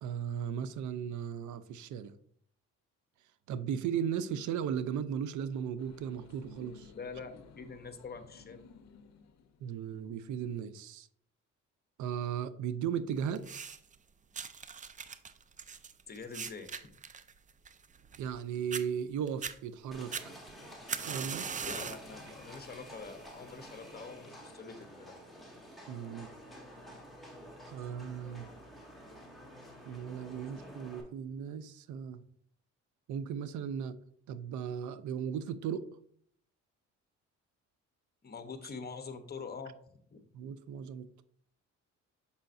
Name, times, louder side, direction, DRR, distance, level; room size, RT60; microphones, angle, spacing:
voice 1, 0.0-2.1 3.5-6.9 9.6-11.1 12.0-13.6 18.2-20.3 21.0-21.5 25.9-26.3 27.7-28.5 29.9-32.2 33.1-34.0 34.3-35.9 40.3-41.2, right 8 dB, 75° right, 14 dB, 0.5 m, -36 dB
sound 1, 5.8-10.2, left 6 dB, 60° left, 0.6 m, -56 dB
voice 2, 6.9-8.6 16.1-16.7 21.6-25.2 38.2-39.8 40.1-40.2, left 5 dB, 30° left, 8 dB, 0.9 m, -45 dB
sound 2, 13.4-14.0 14.3-18.4 18.7-18.8 19.3-19.6 20.1-22.1 22.5-22.9 23.7-23.8, right 6 dB, 25° right, 0.4 m, -40 dB
Livestock farm animals working animals, 19.9-31.0, equal, ahead, 1.9 m, -50 dB
6.9 x 5.5 x 2.6 m, 0.63 s
cardioid pair, 90°, 30 cm